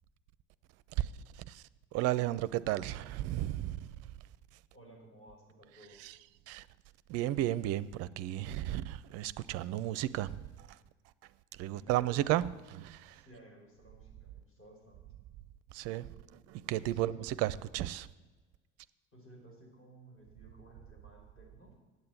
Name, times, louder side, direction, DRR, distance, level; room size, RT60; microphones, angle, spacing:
voice 1, 1.0-1.6 1.9-3.9 6.5-6.7 7.1-10.8 11.6-13.2 15.7-18.1, right 14 dB, 45° right, 0.5 m, -34 dB
voice 2, 4.7-6.0 11.7-12.5 13.1-15.0 16.9-17.3 19.1-21.8, right 1 dB, 35° left, 4.6 m, -56 dB
8.7 x 8.1 x 8.0 m
figure-of-eight pair, 60°, 36 cm